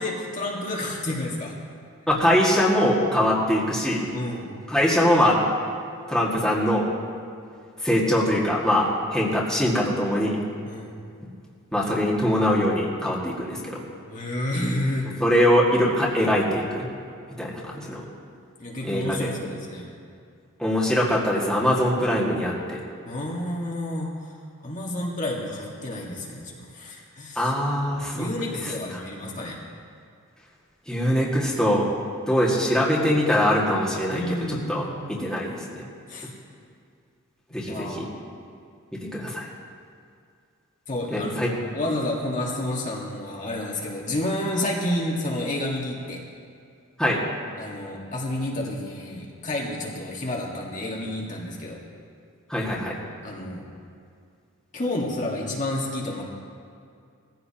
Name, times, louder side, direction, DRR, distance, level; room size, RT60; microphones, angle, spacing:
voice 1, 0.0-1.5 4.1-4.5 10.6-10.9 14.1-15.1 18.6-19.9 23.0-24.3 24.6-27.5 28.1-29.6 34.1-35.0 36.1-36.3 37.6-38.1 40.9-46.2 47.6-51.8 53.2-53.6 54.7-56.2, left 1 dB, 35° left, -3 dB, 1.7 m, -30 dB
voice 2, 2.1-4.0 4.7-5.4 6.1-6.8 7.8-10.4 11.7-13.8 15.2-16.9 17.4-18.0 18.8-19.3 20.6-22.8 27.4-28.3 28.6-28.7 30.9-31.9 32.3-35.8 37.5-38.1 39.1-39.5 41.1-41.5 47.0-47.2 52.5-53.0, equal, 5° left, -6 dB, 1.9 m, -22 dB
19.0 x 15.0 x 2.9 m, 2.3 s
head